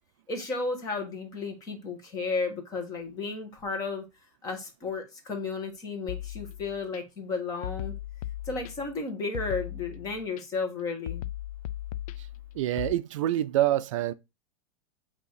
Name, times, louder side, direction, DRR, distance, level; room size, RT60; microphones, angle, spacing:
voice 1, 0.3-4.0 4.4-7.9 8.4-11.2, left 4 dB, 20° left, 1.5 m, -33 dB
sound 1, 6.1-7.0 7.6-9.0 9.3-10.4 11.1-12.9, left 13 dB, 70° left, 0.5 m, -37 dB
voice 2, 12.5-14.1, right 13 dB, 55° right, 0.4 m, -26 dB
7.9 x 2.9 x 4.9 m
supercardioid pair, 175°, 19 cm